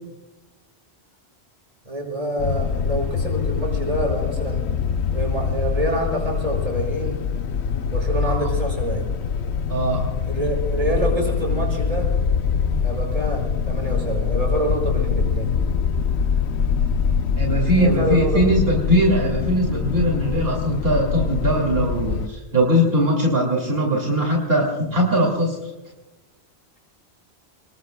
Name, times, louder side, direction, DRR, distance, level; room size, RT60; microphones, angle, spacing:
voice 1, 1.8-4.7 5.1-7.2 7.9-9.1 10.2-12.1 12.8-15.5 17.8-18.7, right 1 dB, 35° right, -1 dB, 6.1 m, -26 dB
sound 1, 2.4-22.3, left 6 dB, 90° left, 1.0 m, -24 dB
voice 2, 9.7-10.1 12.7-12.8 17.4-25.7, equal, 65° right, -1 dB, 2.8 m, -21 dB
29.5 x 20.5 x 2.3 m, 1.0 s
omnidirectional pair, 1.1 m